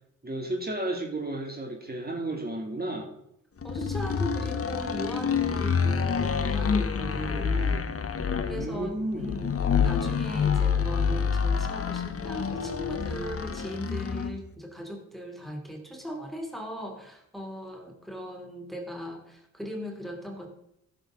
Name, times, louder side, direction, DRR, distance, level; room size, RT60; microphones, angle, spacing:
voice 1, 0.2-3.1 7.3-7.8 8.5-9.3, right 1 dB, 25° right, 1 dB, 2.6 m, -33 dB
sound 1, 3.6-14.4, left 6 dB, 35° left, 1.1 m, -27 dB
voice 2, 3.6-7.8 8.5-9.5 9.8-20.5, equal, ahead, 2 dB, 2.6 m, -38 dB
15.5 x 6.9 x 3.8 m, 0.77 s
hypercardioid pair, 40°, 38 cm